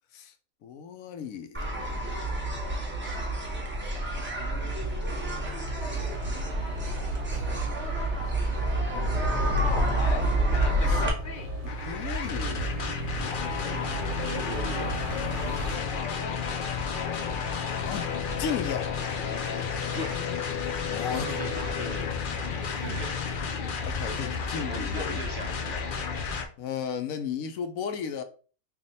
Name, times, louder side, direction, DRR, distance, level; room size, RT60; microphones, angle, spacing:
voice 1, 0.6-1.9 4.4-5.1 10.8-11.1 11.6-12.8 17.8-18.1 18.4-18.9 20.9-21.6 22.6-23.0 23.9-25.2 26.6-28.2, left 7 dB, 80° left, 1.0 m, -35 dB
sound 1, 1.5-11.1, right 1 dB, 10° right, 0.7 m, -28 dB
sound 2, 5.8-15.8, right 3 dB, 80° right, 1.3 m, -37 dB
sound 3, 9.6-26.5, left 6 dB, 55° left, 0.6 m, -32 dB
voice 2, 13.7-14.9 19.9-20.2 21.1-22.1 22.8-23.2 24.5-26.0, right 2 dB, 55° right, 0.9 m, -39 dB
3.5 x 2.4 x 3.9 m
omnidirectional pair, 1.4 m